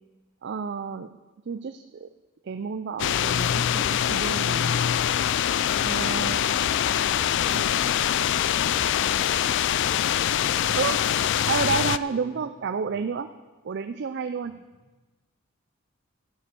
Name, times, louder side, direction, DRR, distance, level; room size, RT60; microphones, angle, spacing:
voice 1, 0.4-1.1 1.5-2.1 2.4-4.9 5.8-6.7 7.5-7.6 10.8-11.0 11.5-13.3 13.6-14.6, right 5 dB, 50° right, 10 dB, 0.4 m, -30 dB
sound 1, 3.0-12.0, left 10 dB, 55° left, 0.3 m, -24 dB
voice 2, 6.6-13.0 14.4-14.9, equal, 15° right, -4 dB, 3.5 m, -49 dB
12.0 x 9.4 x 6.9 m, 1.2 s
head